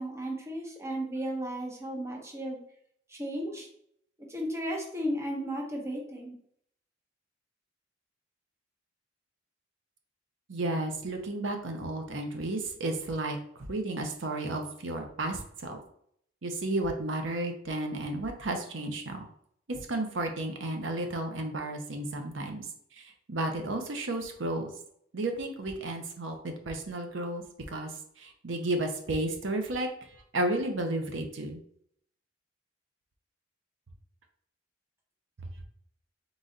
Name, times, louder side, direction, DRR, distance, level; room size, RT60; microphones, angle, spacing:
voice 1, 0.0-2.6 3.1-3.7 4.3-6.4, equal, 15° right, 0 dB, 0.8 m, -34 dB
voice 2, 10.5-15.8 16.4-19.2 19.7-22.7 22.9-24.7 25.1-29.9 30.3-31.6, right 2 dB, 85° right, 5 dB, 0.7 m, -33 dB
3.9 x 3.1 x 3.8 m, 0.68 s
head